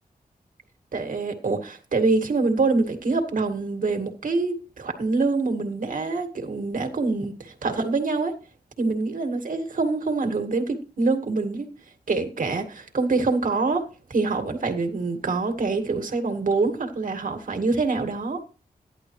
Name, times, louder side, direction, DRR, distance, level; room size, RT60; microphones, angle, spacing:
voice 1, 0.9-8.3 8.8-11.7 12.1-13.8 14.1-18.4, right 3 dB, 65° right, 2.0 m, -25 dB
14.0 x 11.0 x 3.2 m
wide cardioid pair, 130°, 15 cm